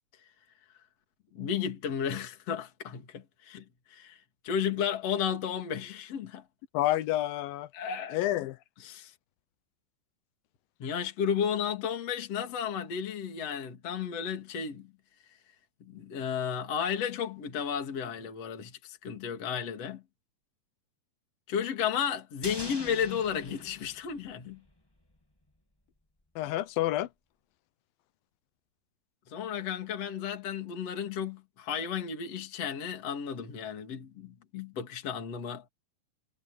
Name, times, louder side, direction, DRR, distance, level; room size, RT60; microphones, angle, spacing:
voice 1, 1.3-6.4 7.7-8.2 8.8-9.1 10.8-14.9 15.8-20.0 21.5-24.6 29.3-35.7, left 8 dB, 45° left, 3.4 m, -33 dB
voice 2, 6.7-7.7 8.1-8.6 26.4-27.1, left 15 dB, 80° left, 2.6 m, -29 dB
sound 1, 22.4-24.8 25.1-25.2, left 1 dB, 10° left, 1.0 m, -44 dB
omnidirectional pair, 4.1 m